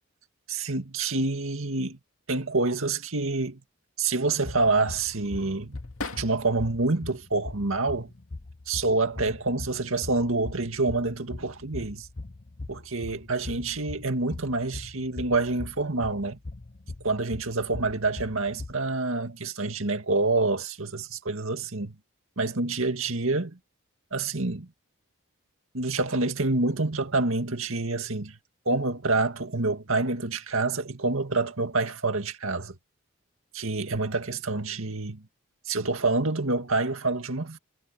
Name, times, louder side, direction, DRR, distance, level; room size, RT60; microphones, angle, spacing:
voice 1, 0.5-2.0 2.3-3.6 4.0-5.8 6.1-8.1 8.7-12.1 12.7-16.4 17.0-21.9 22.4-23.6 24.1-24.7 25.7-28.4 28.7-32.8 33.5-35.2 35.7-37.6, right 3 dB, 75° right, 2.0 m, -27 dB
sound 1, 4.2-6.7 7.2-8.0 8.9-9.3 9.6-10.4, left 3 dB, 85° left, 2.5 m, -43 dB
sound 2, 4.4-18.7, left 2 dB, 40° left, 0.8 m, -41 dB
head